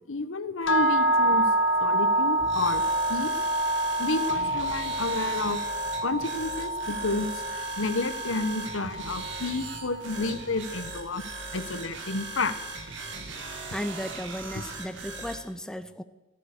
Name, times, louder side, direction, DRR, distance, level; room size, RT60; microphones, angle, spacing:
voice 1, 0.1-1.4 1.8-2.8 3.1-3.3 4.0-5.6 6.0-11.2 11.5-12.5 14.5-14.6, left 3 dB, 85° left, 12 dB, 1.2 m, -30 dB
sound 1, 0.7-10.7, right 1 dB, 70° left, 1.5 m, -27 dB
sound 2, 2.4-15.4, right 3 dB, 65° right, 2.5 m, -39 dB
voice 2, 13.7-16.0, equal, 5° left, 10 dB, 0.6 m, -35 dB
14.5 x 14.0 x 6.7 m, 1.1 s
head